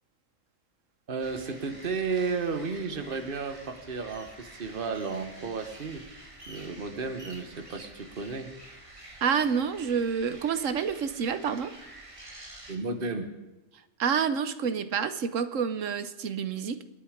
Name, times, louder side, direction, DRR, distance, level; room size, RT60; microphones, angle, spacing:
voice 1, 1.1-6.1 6.5-8.5 12.7-13.3, right 4 dB, 40° right, 8 dB, 1.6 m, -33 dB
sound 1, 1.2-12.8, right 1 dB, 25° right, 2.3 m, -49 dB
voice 2, 9.2-11.7 14.0-16.8, right 6 dB, 70° right, 12 dB, 1.3 m, -28 dB
28.0 x 9.8 x 5.2 m, 1.0 s
omnidirectional pair, 1.4 m